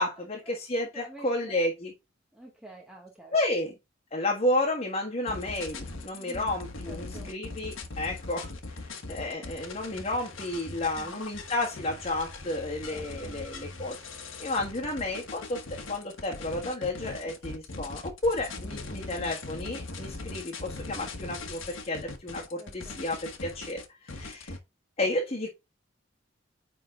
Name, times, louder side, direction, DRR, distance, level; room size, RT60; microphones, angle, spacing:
voice 1, 0.0-1.9 3.3-3.7 4.1-14.0 14.4-15.6 15.9-24.5 25.0-25.5, left 1 dB, 30° left, 1.5 m, -31 dB
voice 2, 0.8-1.6 2.3-3.3 6.1-6.5 6.8-7.3 11.0-11.2 12.9-13.4 22.6-23.0, right 1 dB, 5° right, 1.2 m, -48 dB
sound 1, 5.3-24.6, left 3 dB, 75° left, 1.3 m, -40 dB
9.4 x 3.8 x 3.7 m
head